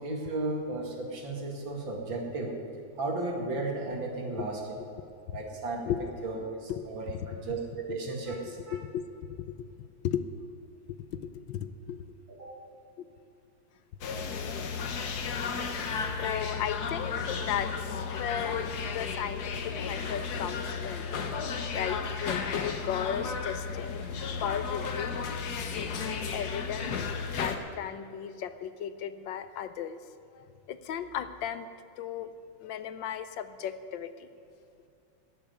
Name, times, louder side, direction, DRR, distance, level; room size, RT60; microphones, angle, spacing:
voice 1, 0.0-2.6 3.0-4.6 5.3-5.8 6.2-8.8 12.4-12.6 21.0-21.2, right 2 dB, 70° right, 0 dB, 2.8 m, -34 dB
voice 2, 6.7-7.4 8.7-9.0 9.3-9.5 10.0-10.2 10.9-12.1 15.8-15.9 16.2-21.1 21.7-24.0 24.4-25.2 25.6-30.0 30.3-31.7 32.0-32.3 32.6-34.3, left 9 dB, 80° left, 11 dB, 1.3 m, -36 dB
sound 1, 14.0-27.6, left 5 dB, 60° left, 1.4 m, -34 dB
14.5 x 7.0 x 9.5 m, 2.5 s
omnidirectional pair, 2.1 m